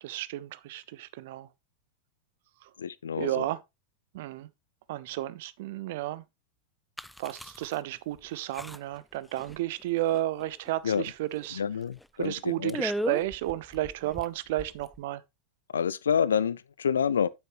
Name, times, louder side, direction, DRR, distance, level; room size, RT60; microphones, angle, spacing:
voice 1, 0.0-1.5 2.6-2.7 3.2-3.6 4.1-4.5 4.9-6.2 7.2-11.6 12.2-15.2, right 15 dB, 50° right, 0.7 m, -32 dB
voice 2, 2.8-3.5 10.8-11.0 11.5-12.8 15.7-17.3, left 7 dB, 70° left, 0.5 m, -28 dB
sound 1, 7.0-7.8 8.2-8.3 8.5-9.0 9.4-9.8 10.1-10.7 11.0-11.1 11.4-11.5 12.0-12.2 12.7-15.0, equal, ahead, 0.4 m, -36 dB
9.4 x 7.5 x 3.2 m
figure-of-eight pair, 90°, 0 cm